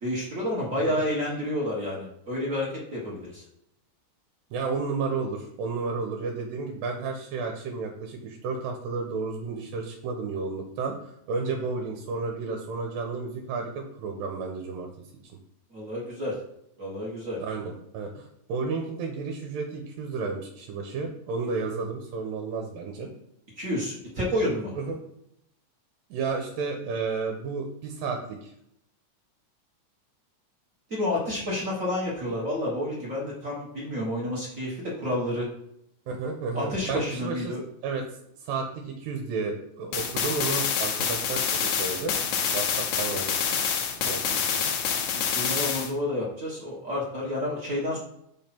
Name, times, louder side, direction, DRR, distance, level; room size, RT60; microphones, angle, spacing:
voice 1, 0.0-3.4 15.7-16.4 16.8-17.4 23.6-24.7 30.9-35.5 36.5-37.6 45.1-48.0, left 1 dB, 35° right, -5 dB, 1.3 m, -30 dB
voice 2, 4.5-11.0 11.3-14.9 17.4-23.1 24.8-25.0 26.1-28.5 36.1-38.0 38.4-42.2 42.5-43.6 44.1-44.7, right 4 dB, 85° right, 2 dB, 2.6 m, -32 dB
sound 1, 39.9-45.9, left 7 dB, 70° left, 1.9 m, -27 dB
5.7 x 5.3 x 4.4 m, 0.77 s
omnidirectional pair, 4.0 m